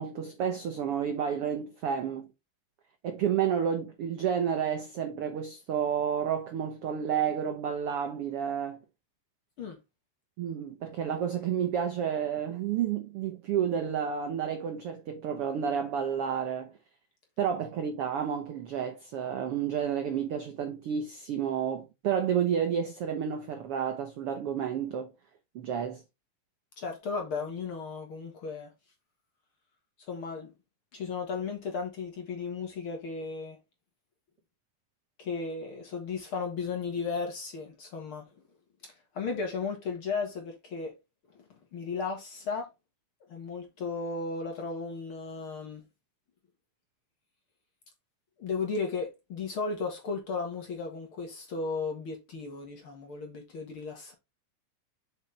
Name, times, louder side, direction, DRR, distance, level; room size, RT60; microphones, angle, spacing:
voice 1, 0.0-2.3 3.0-8.8 10.4-16.7 17.4-25.1 25.5-26.0, right 8 dB, 85° right, 1.2 m, -30 dB
voice 2, 26.8-28.7 30.1-30.5 30.9-33.6 35.2-38.2 38.8-40.9 41.7-42.7 43.3-45.8 48.4-54.1, left 4 dB, 50° left, 1.8 m, -35 dB
7.3 x 5.4 x 3.3 m
omnidirectional pair, 3.9 m